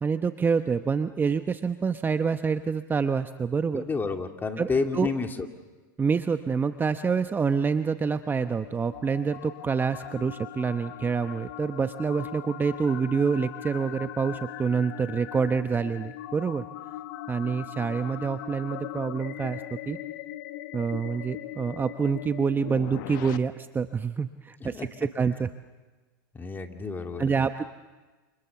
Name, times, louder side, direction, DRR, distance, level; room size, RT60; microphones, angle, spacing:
voice 1, 0.0-3.9 4.6-5.1 6.0-16.6 17.3-20.0 20.7-25.5 27.2-27.6, right 5 dB, 15° right, 9 dB, 0.9 m, -27 dB
voice 2, 3.7-5.3 24.7-24.9 26.3-27.2, left 4 dB, 15° left, 4 dB, 2.6 m, -29 dB
sound 1, 8.3-23.4, left 14 dB, 70° left, 1.2 m, -40 dB
29.0 x 28.5 x 7.1 m, 1.3 s
hypercardioid pair, 110°, 11 cm